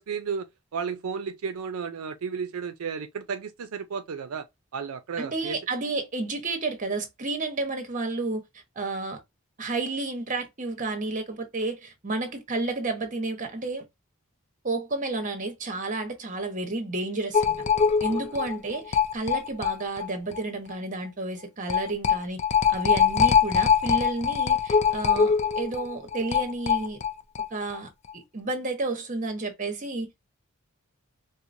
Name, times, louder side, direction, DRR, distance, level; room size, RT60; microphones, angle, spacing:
voice 1, 0.0-4.5 4.7-5.6 18.1-18.3, right 6 dB, 85° right, 0.4 m, -33 dB
voice 2, 5.2-9.2 9.6-13.9 14.6-17.5 18.0-22.4 22.7-27.0 27.5-30.1, right 2 dB, 35° right, 1.0 m, -31 dB
sound 1, 17.3-20.1 20.3-20.4 20.7-20.8 21.7-27.5 27.7-27.8 28.1-28.2, left 7 dB, 30° left, 0.4 m, -23 dB
4.6 x 2.1 x 2.6 m
head